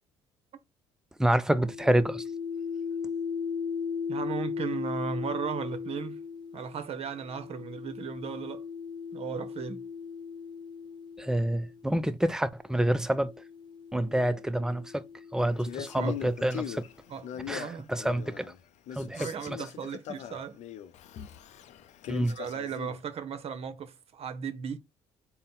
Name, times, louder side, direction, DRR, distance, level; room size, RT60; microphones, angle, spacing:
voice 1, 1.2-2.2 11.2-13.3 13.9-15.0 15.3-16.8 17.5-18.5 18.9-19.3 22.1-22.4, right 1 dB, 5° right, 0.5 m, -27 dB
sound 1, 1.5-11.9 12.8-16.5, left 6 dB, 35° left, 1.0 m, -38 dB
voice 2, 4.1-6.2 6.5-8.6 9.1-9.8 16.0-16.2 17.1-17.9 19.1-20.6 22.2-24.8, right 7 dB, 50° right, 0.8 m, -36 dB
Male speech man speaking, 15.6-18.6 18.9-23.0, left 9 dB, 60° left, 0.5 m, -40 dB
4.0 x 2.1 x 3.9 m
hypercardioid pair, 60°, 13 cm